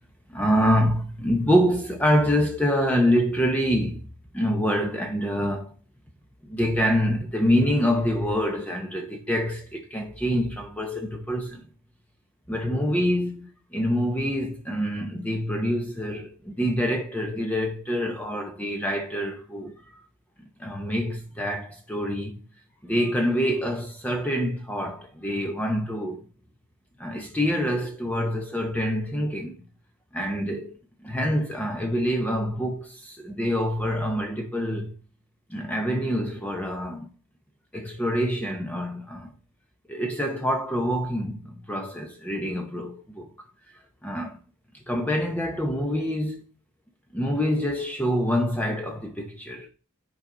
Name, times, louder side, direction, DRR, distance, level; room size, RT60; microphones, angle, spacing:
voice 1, 0.3-4.0 4.3-5.7 6.4-11.6 12.5-19.8 20.6-22.4 22.8-26.2 27.0-29.6 30.1-30.8 31.0-35.0 35.5-37.1 37.7-39.3 39.9-43.3 44.0-44.4 44.9-46.4 47.1-49.7, equal, 5° left, 0.7 m, -26 dB
10.5 x 4.8 x 3.8 m
head